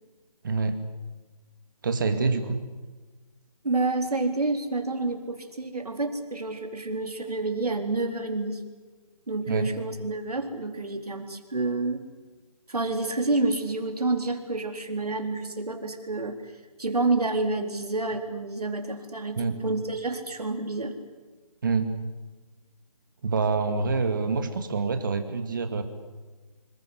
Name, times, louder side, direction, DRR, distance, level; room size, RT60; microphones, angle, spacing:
voice 1, 0.4-0.8 1.8-2.6 9.5-9.7 19.4-19.6 21.6-21.9 23.2-25.8, right 4 dB, 35° right, 8 dB, 2.3 m, -26 dB
voice 2, 3.6-8.6 9.3-12.1 12.7-16.4 16.8-21.0, right 3 dB, 80° right, 5 dB, 4.2 m, -29 dB
26.5 x 22.0 x 8.2 m, 1.3 s
figure-of-eight pair, 165°, 19 cm